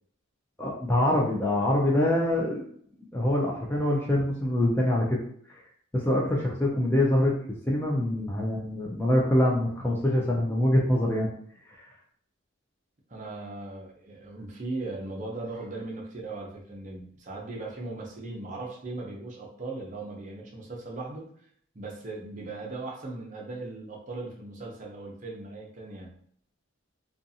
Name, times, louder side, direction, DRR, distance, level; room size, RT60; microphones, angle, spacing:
voice 1, 0.6-2.7 3.1-5.2 5.9-7.3 7.7-11.3 11.7-11.8, left 1 dB, 10° left, -3 dB, 0.3 m, -24 dB
voice 2, 13.1-21.3 21.7-26.2, right 2 dB, 35° right, -1 dB, 0.6 m, -38 dB
2.5 x 2.4 x 2.6 m, 0.62 s
head